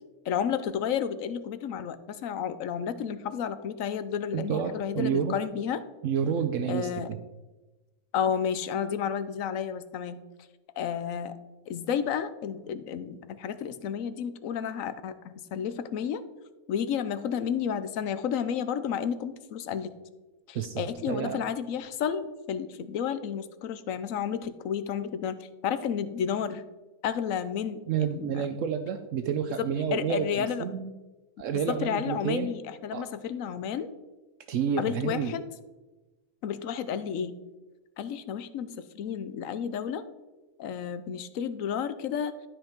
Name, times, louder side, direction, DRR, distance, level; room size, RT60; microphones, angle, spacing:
voice 1, 0.3-5.8 6.7-7.1 8.1-10.2 10.8-11.3 11.7-16.2 16.7-19.9 20.5-25.4 25.6-26.6 27.0-28.5 29.6-30.6 31.6-33.9 34.8-35.4 36.4-37.4 38.0-40.0 40.6-42.4, left 8 dB, 80° left, 12 dB, 1.1 m, -31 dB
voice 2, 4.3-5.4 6.0-7.2 20.5-21.4 27.9-30.9 31.4-32.5 32.9-33.1 34.5-35.3, right 7 dB, 70° right, 8 dB, 1.0 m, -30 dB
12.5 x 5.4 x 4.5 m, 1.1 s
omnidirectional pair, 1.4 m